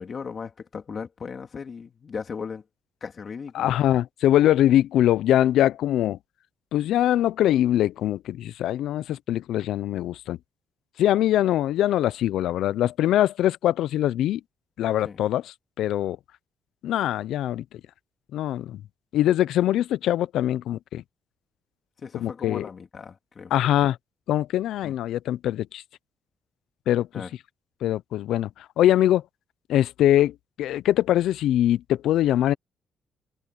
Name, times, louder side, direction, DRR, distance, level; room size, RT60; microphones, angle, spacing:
voice 1, 0.0-2.6 3.0-3.7 15.0-15.2 22.0-23.5 24.8-25.0 27.1-27.3, left 5 dB, 45° left, 3.3 m, -37 dB
voice 2, 3.5-6.2 6.7-10.4 11.0-14.4 14.8-15.4 15.8-16.2 16.8-17.6 18.3-18.8 19.1-21.0 22.1-22.6 23.5-24.0 24.3-25.8 26.9-27.1 27.8-29.2 29.7-32.5, left 12 dB, 80° left, 0.5 m, -22 dB
cardioid pair, 90°, 0 cm